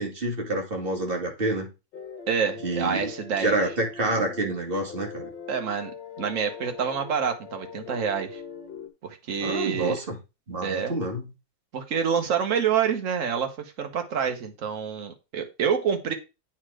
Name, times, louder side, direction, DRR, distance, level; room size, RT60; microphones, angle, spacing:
voice 1, 0.0-1.7 2.6-3.1 3.4-5.3 9.4-10.2 10.5-11.2, right 2 dB, 30° right, 1 dB, 2.1 m, -28 dB
sound 1, 1.9-4.6 4.9-8.9, left 5 dB, 80° left, 2.1 m, -41 dB
voice 2, 2.3-3.5 5.5-5.9 6.2-8.4 9.0-10.0 10.6-10.9 11.7-16.1, right 7 dB, 50° right, 5 dB, 1.5 m, -27 dB
8.4 x 4.5 x 4.9 m, 0.28 s
omnidirectional pair, 2.0 m